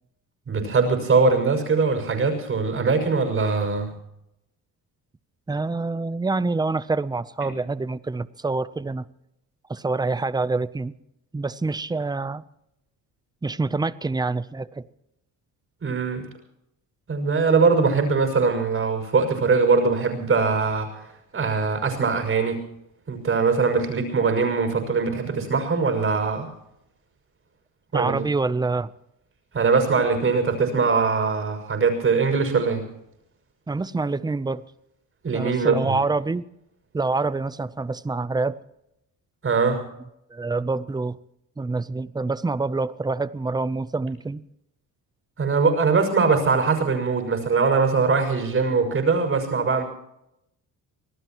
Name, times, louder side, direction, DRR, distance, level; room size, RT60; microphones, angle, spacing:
voice 1, 0.5-3.9 15.8-16.3 17.1-21.1 21.3-22.6 23.1-26.5 27.9-28.3 29.5-32.9 35.2-35.9 39.4-39.8 45.4-49.8, right 4 dB, 40° right, 3 dB, 5.8 m, -21 dB
voice 2, 5.5-9.1 9.7-10.9 11.3-12.4 13.4-14.8 27.9-28.9 33.7-34.6 35.3-36.4 36.9-38.6 40.3-41.2 41.6-44.4, right 3 dB, 10° right, 16 dB, 0.6 m, -26 dB
26.5 x 18.0 x 3.0 m, 0.82 s
cardioid pair, 125°, 35 cm